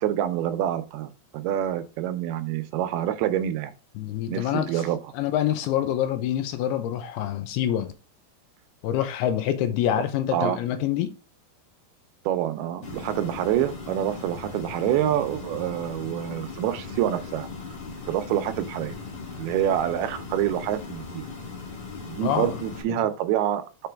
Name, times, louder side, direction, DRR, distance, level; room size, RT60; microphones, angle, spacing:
voice 1, 0.0-3.7 4.3-5.0 10.3-10.6 12.3-17.5 18.1-19.0 19.4-21.2 22.1-23.9, right 11 dB, 85° right, 2.5 m, -27 dB
voice 2, 4.0-4.8 5.1-7.9 8.8-11.1 22.2-22.6 22.9-23.0, left 11 dB, 85° left, 2.7 m, -26 dB
sound 1, 12.8-22.8, left 4 dB, 55° left, 1.5 m, -38 dB
6.7 x 4.5 x 3.4 m
omnidirectional pair, 4.5 m